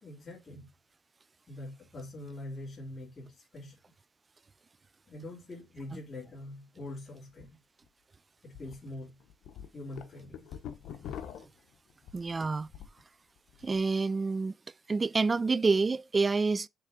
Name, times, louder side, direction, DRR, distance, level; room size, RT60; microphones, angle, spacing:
voice 1, 0.0-0.7 1.5-3.8 5.1-7.6 8.4-9.2 9.7-10.5, left 1 dB, 30° left, 3.3 m, -44 dB
sound 1, 7.3-7.4 7.9-8.0 8.5-8.8 9.2-13.0 13.4-13.8, left 9 dB, 80° left, 0.9 m, -44 dB
voice 2, 12.1-12.7 13.6-14.6 14.9-16.7, right 4 dB, 30° right, 0.3 m, -28 dB
6.7 x 3.5 x 5.2 m
cardioid pair, 90°, 0 cm